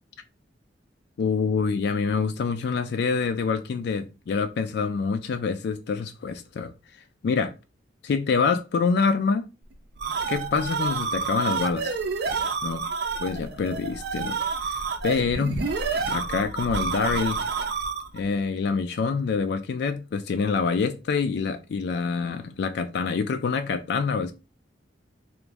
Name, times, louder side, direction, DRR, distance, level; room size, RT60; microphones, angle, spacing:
voice 1, 1.2-6.7 7.2-7.5 8.0-9.5 10.3-12.0 12.6-12.8 13.2-15.6 16.1-17.4 18.1-24.3, left 5 dB, 65° left, 0.3 m, -26 dB
sound 1, 9.7-18.2, right 4 dB, 65° right, 0.5 m, -29 dB
3.0 x 2.5 x 3.4 m
head